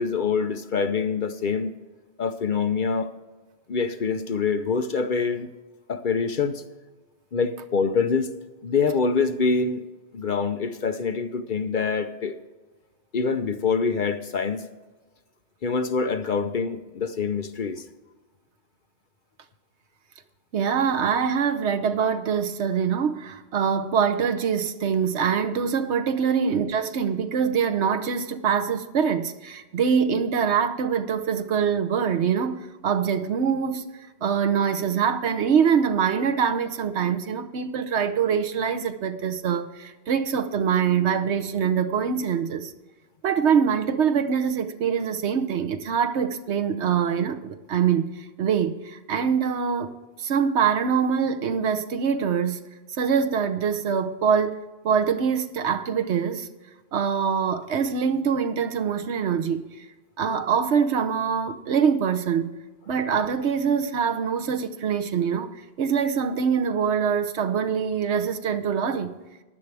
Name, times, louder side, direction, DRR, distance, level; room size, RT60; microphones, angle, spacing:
voice 1, 0.0-1.7 2.2-3.1 3.7-5.5 5.9-6.6 7.3-8.3 8.6-9.8 10.1-12.4 13.1-14.7 15.6-17.8 26.4-26.5, left 5 dB, 50° left, 0.8 m, -25 dB
voice 2, 20.5-33.8 34.2-42.7 43.2-49.9 50.2-52.6 53.0-54.6 54.8-56.5 56.9-59.7 60.2-62.5 62.9-69.1, right 7 dB, 75° right, 1.1 m, -24 dB
15.5 x 11.0 x 3.4 m
omnidirectional pair, 1.2 m